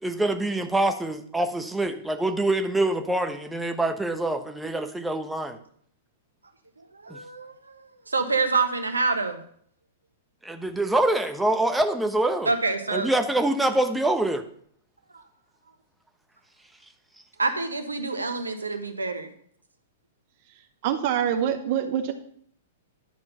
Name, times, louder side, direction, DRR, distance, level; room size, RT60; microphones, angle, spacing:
voice 1, 0.0-5.6 7.1-7.2 10.4-12.5 12.9-14.4, right 1 dB, 5° right, 6 dB, 0.9 m, -25 dB
voice 2, 6.9-9.4 12.4-13.1 15.1-15.2 17.4-19.3, right 3 dB, 85° right, 7 dB, 1.2 m, -27 dB
voice 3, 20.5-22.1, right 9 dB, 50° right, 8 dB, 0.9 m, -26 dB
11.0 x 4.4 x 5.6 m, 0.62 s
figure-of-eight pair, 105°, 0 cm